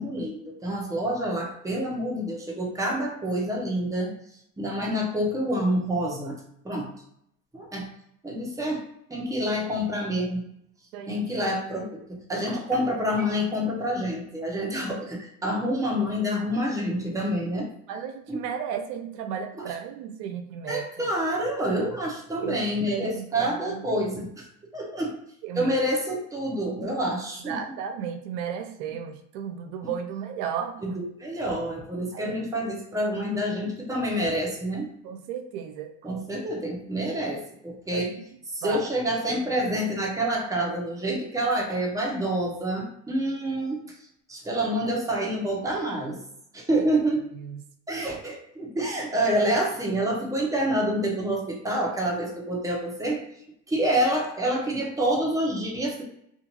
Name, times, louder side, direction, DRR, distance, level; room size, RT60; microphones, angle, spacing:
voice 1, 0.0-4.1 4.6-6.4 6.6-6.9 7.5-7.9 8.2-8.8 9.1-10.5 11.1-17.7 18.3-18.4 20.7-24.3 24.7-25.2 25.5-27.6 30.8-34.9 36.0-38.1 38.5-43.8 44.3-46.2 46.5-47.2 47.9-53.2 53.7-56.0, equal, 5° right, -2 dB, 0.8 m, -27 dB
voice 2, 10.9-11.5 17.9-21.1 22.4-22.6 22.9-24.0 25.4-25.7 27.4-30.8 32.1-32.7 35.0-36.2 37.9-38.2 38.6-38.9 46.7-46.9 47.3-47.6, right 8 dB, 75° right, 7 dB, 0.6 m, -34 dB
Telephone, 12.3-13.5, left 1 dB, 15° left, 1.4 m, -40 dB
2.5 x 2.5 x 2.9 m, 0.72 s
supercardioid pair, 90°, 48 cm